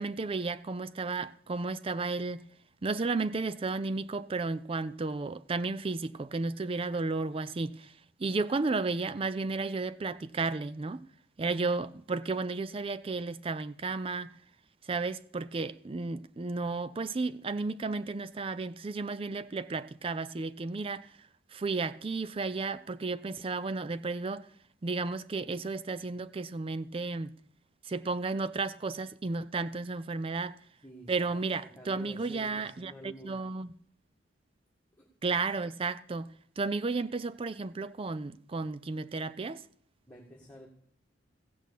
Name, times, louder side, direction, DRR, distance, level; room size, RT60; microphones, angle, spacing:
voice 1, 0.0-2.4 2.8-7.9 8.2-11.0 11.4-14.3 14.9-21.1 21.5-24.5 24.8-27.4 27.9-30.6 31.1-33.7 35.2-36.3 36.6-39.6, right 3 dB, 30° right, 0.4 m, -33 dB
voice 2, 30.8-33.4 35.0-35.1 40.1-40.7, left 1 dB, 5° left, 1.8 m, -49 dB
15.5 x 6.3 x 8.4 m
head